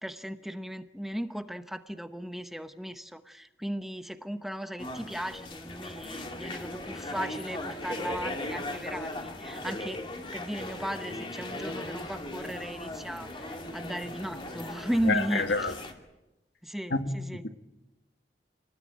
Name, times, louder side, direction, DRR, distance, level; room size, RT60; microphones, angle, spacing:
voice 1, 0.0-15.7 16.6-17.4, equal, ahead, 0.9 m, -36 dB
sound 1, 4.8-15.9, left 1 dB, 30° left, 2.6 m, -38 dB
voice 2, 15.1-15.7 16.9-17.0, left 3 dB, 70° left, 1.9 m, -27 dB
28.0 x 19.5 x 9.5 m
head